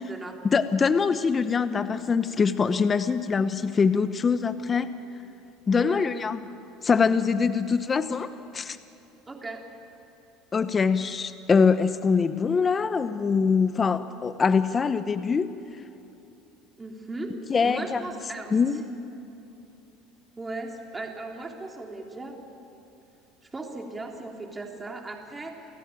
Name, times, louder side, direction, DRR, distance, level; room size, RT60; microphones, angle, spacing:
voice 1, 0.4-5.0 5.7-6.4 6.8-8.8 10.5-15.6 17.5-18.0 18.5-18.8, left 5 dB, 25° left, 12 dB, 0.9 m, -23 dB
voice 2, 5.8-6.1 9.3-9.6 16.8-17.3 17.6-18.9 20.3-22.6 23.5-25.6, right 2 dB, 15° right, 2 dB, 3.4 m, -37 dB
28.0 x 16.0 x 9.2 m, 2.8 s
supercardioid pair, 100°, 0 cm